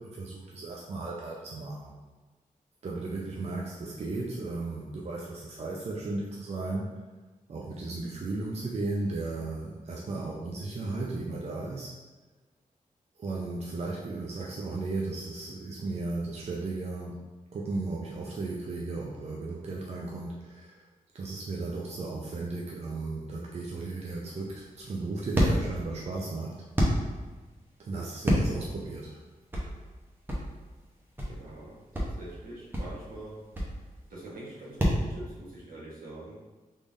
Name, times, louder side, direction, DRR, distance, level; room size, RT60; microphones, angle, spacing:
voice 1, 0.0-2.0 2.8-6.9 7.5-11.9 13.2-17.2 17.5-20.9 21.1-26.6 27.8-29.2, right 3 dB, 45° right, -3 dB, 0.5 m, -35 dB
sound 1, 24.2-35.0, equal, 15° right, 0.8 m, -30 dB
voice 2, 31.3-31.8 32.2-33.3 34.1-36.3, right 2 dB, 80° right, -6 dB, 1.2 m, -44 dB
3.6 x 3.3 x 2.6 m, 1.2 s
wide cardioid pair, 95°, 15 cm